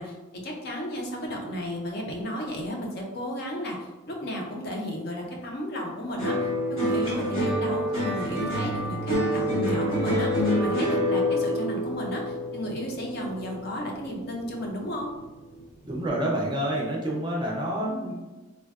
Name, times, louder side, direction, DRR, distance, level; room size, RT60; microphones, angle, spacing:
voice 1, 0.0-15.1, equal, 50° left, 0 dB, 0.5 m, -34 dB
sound 1, 6.2-14.6 15.0-15.6, equal, 85° left, 1.0 m, -27 dB
voice 2, 15.8-18.1, right 1 dB, 20° right, -2 dB, 0.4 m, -28 dB
3.3 x 2.1 x 2.3 m, 1.1 s
head